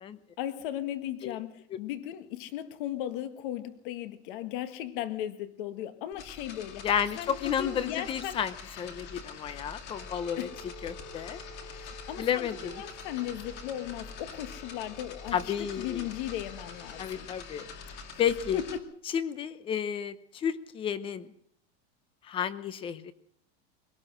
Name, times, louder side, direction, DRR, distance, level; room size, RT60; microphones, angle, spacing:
voice 1, 0.4-6.8 7.1-8.4 10.4-10.6 11.7-17.3 18.5-18.9, left 11 dB, 50° left, 10 dB, 1.7 m, -37 dB
sound 1, 6.1-18.8, left 5 dB, 30° left, 2.3 m, -45 dB
voice 2, 6.8-10.5 10.8-11.4 12.2-12.8 15.3-16.1 17.0-17.7 18.2-18.6 19.1-21.3 22.3-23.1, left 8 dB, 15° left, 15 dB, 0.8 m, -31 dB
Wind instrument woodwind instrument, 9.9-17.3, right 2 dB, 85° left, 5.4 m, -52 dB
24.0 x 18.5 x 6.3 m, 0.66 s
supercardioid pair, 180°, 34 cm